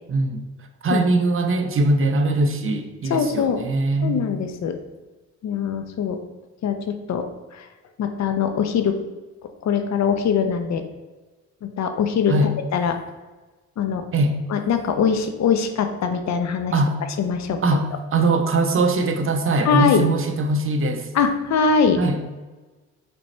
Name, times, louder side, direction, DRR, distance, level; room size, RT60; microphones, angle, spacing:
voice 1, 0.1-0.4 0.8-4.2 12.3-12.5 14.1-14.4 16.7-17.0 17.6-17.8 18.1-21.1 22.0-22.2, right 2 dB, 45° right, 6 dB, 0.8 m, -21 dB
voice 2, 3.1-3.6 4.0-4.8 5.4-6.2 6.6-7.7 8.0-9.0 9.6-10.8 11.6-13.0 13.8-14.1 14.5-16.7 17.2-17.6 19.6-20.0 21.1-22.0, left 6 dB, 65° left, 8 dB, 0.8 m, -22 dB
5.4 x 4.3 x 4.4 m, 1.2 s
cardioid pair, 90°, 30 cm